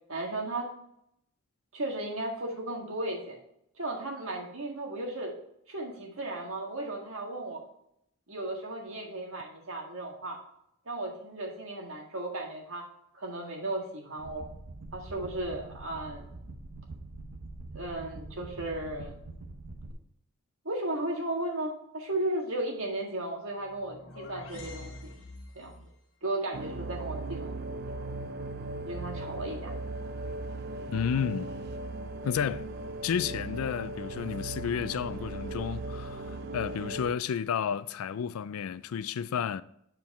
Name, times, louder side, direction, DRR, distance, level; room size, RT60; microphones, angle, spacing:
voice 1, 0.1-0.7 1.7-3.4 3.8-5.3 5.7-7.6 8.3-10.4 10.8-12.8 13.1-14.4 14.9-16.3 17.7-19.2 20.6-25.1 25.5-25.9 26.2-27.5 28.9-29.7, right 1 dB, 65° right, 1.7 m, -35 dB
sound 1, 14.2-19.9, right 2 dB, 85° right, 0.9 m, -44 dB
sound 2, 23.6-25.9, left 2 dB, 60° left, 1.3 m, -45 dB
sound 3, 26.5-37.1, right 2 dB, 45° right, 0.4 m, -38 dB
voice 2, 30.9-31.5 32.2-32.6 33.0-39.6, left 7 dB, 75° left, 0.4 m, -31 dB
7.7 x 4.5 x 4.1 m
head